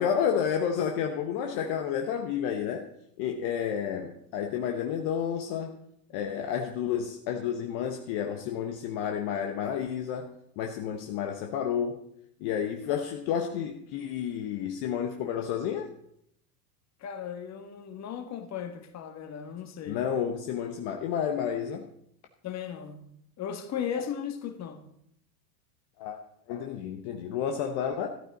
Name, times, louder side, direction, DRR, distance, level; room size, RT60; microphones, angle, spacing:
voice 1, 0.0-2.9 3.2-5.8 6.1-12.0 12.4-15.9 19.9-21.9 26.0-26.2 26.5-28.1, left 8 dB, 50° left, 1.2 m, -30 dB
voice 2, 17.0-20.0 22.4-23.1 23.4-24.8, left 8 dB, 35° left, 1.6 m, -36 dB
13.0 x 11.5 x 4.2 m
hypercardioid pair, 105°, 49 cm